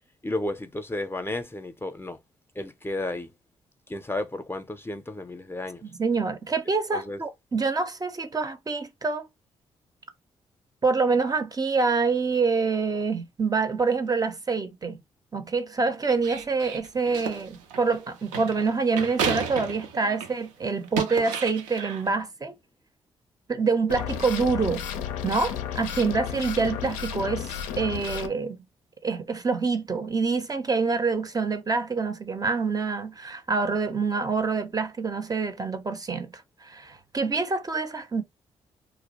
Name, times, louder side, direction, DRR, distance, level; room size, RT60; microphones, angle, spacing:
voice 1, 0.2-2.2 2.6-3.3 3.9-5.8 6.9-7.2, left 1 dB, 20° left, 0.5 m, -32 dB
voice 2, 6.0-9.3 10.8-15.0 15.3-22.6 23.5-24.9 25.2-28.6 29.0-38.2, right 4 dB, 30° right, 0.5 m, -26 dB
sound 1, 16.1-20.4 20.8-22.1, right 6 dB, 85° right, 0.5 m, -33 dB
sound 2, 23.9-28.3, left 9 dB, 85° left, 0.4 m, -33 dB
2.2 x 2.0 x 2.8 m
hypercardioid pair, 45°, 13 cm